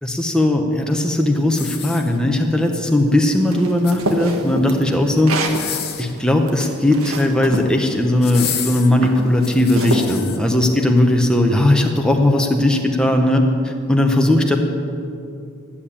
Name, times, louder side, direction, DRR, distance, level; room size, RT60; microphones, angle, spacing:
voice 1, 0.0-14.6, left 1 dB, 5° left, 2 dB, 0.8 m, -18 dB
sound 1, 1.5-2.5 3.6-4.4 5.3-6.2 7.3-7.7 8.2-10.4 11.0-11.1, left 9 dB, 50° left, 1.1 m, -30 dB
sound 2, 3.5-5.6 6.2-7.7 8.4-8.6 9.0-10.1, right 1 dB, 90° right, 1.6 m, -25 dB
12.0 x 8.6 x 8.7 m, 2.6 s
head